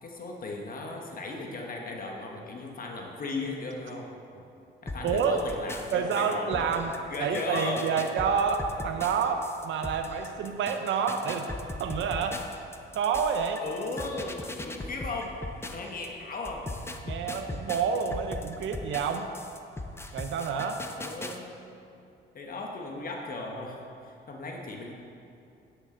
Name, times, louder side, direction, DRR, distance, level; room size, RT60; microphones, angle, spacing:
voice 1, 0.0-4.1 4.8-6.7 7.1-7.8 13.6-14.4 14.6-15.4 15.6-16.6 21.0-21.5 22.3-24.9, left 3 dB, 45° left, 0 dB, 1.3 m, -36 dB
sound 1, 4.9-16.1 16.4-21.4, left 2 dB, 10° left, 0.7 m, -39 dB
voice 2, 5.0-5.4 5.9-11.5 11.8-12.4 12.9-13.6 17.0-19.3 20.1-20.8, right 6 dB, 75° right, 6 dB, 0.6 m, -28 dB
10.0 x 9.0 x 3.8 m, 2.6 s
cardioid pair, 90°, 20 cm